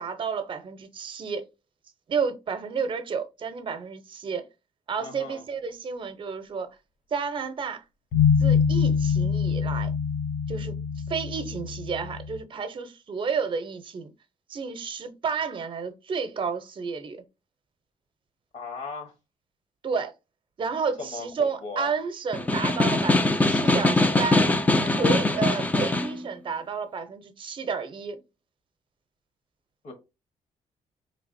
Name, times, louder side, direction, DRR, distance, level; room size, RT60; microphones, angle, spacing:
voice 1, 0.0-1.4 2.1-4.5 4.9-6.7 7.1-7.8 8.4-9.9 10.5-10.8 11.1-14.1 14.5-17.2 19.8-20.1 20.6-24.4 24.8-28.2, right 5 dB, 40° right, 0.7 m, -31 dB
voice 2, 5.0-5.4 18.5-19.1 21.1-21.9 29.8-29.9, left 4 dB, 60° left, 1.2 m, -37 dB
sound 1, 8.1-12.4, left 6 dB, 75° left, 0.7 m, -24 dB
Snare drum, 22.3-26.2, left 2 dB, 10° left, 0.4 m, -22 dB
4.7 x 3.3 x 2.6 m
cardioid pair, 140°, 13 cm